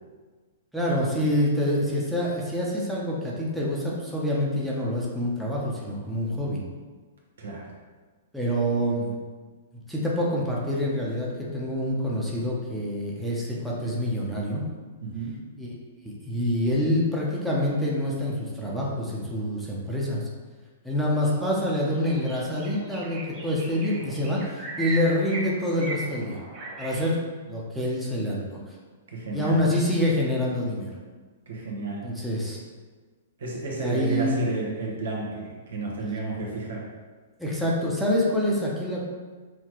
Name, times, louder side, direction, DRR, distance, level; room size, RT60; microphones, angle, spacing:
voice 1, 0.7-6.6 8.3-9.1 9.9-14.7 15.6-15.7 16.0-20.2 20.8-26.4 26.8-27.2 27.5-28.6 29.3-30.9 32.0-32.6 33.8-34.4 37.4-39.1, left 1 dB, ahead, -5 dB, 0.8 m, -26 dB
voice 2, 15.0-15.5 29.1-29.6 31.5-32.1 33.4-36.9, right 3 dB, 80° right, -2 dB, 1.1 m, -32 dB
sound 1, 21.2-21.3 21.7-27.1, right 2 dB, 25° right, 1.4 m, -38 dB
5.8 x 2.1 x 3.1 m, 1.4 s
hypercardioid pair, 130°, 0 cm